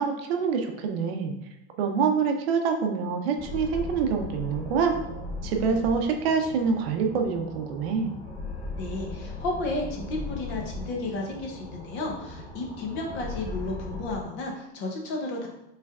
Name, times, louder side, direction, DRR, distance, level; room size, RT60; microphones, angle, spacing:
voice 1, 0.0-1.3 1.8-5.0 5.4-8.1, right 5 dB, 60° right, 4 dB, 0.7 m, -26 dB
sound 1, 3.4-14.2, left 2 dB, 70° left, 1.2 m, -38 dB
voice 2, 8.8-15.5, left 2 dB, 30° left, 1 dB, 0.7 m, -33 dB
5.5 x 3.3 x 2.4 m, 0.91 s
supercardioid pair, 165°, 35 cm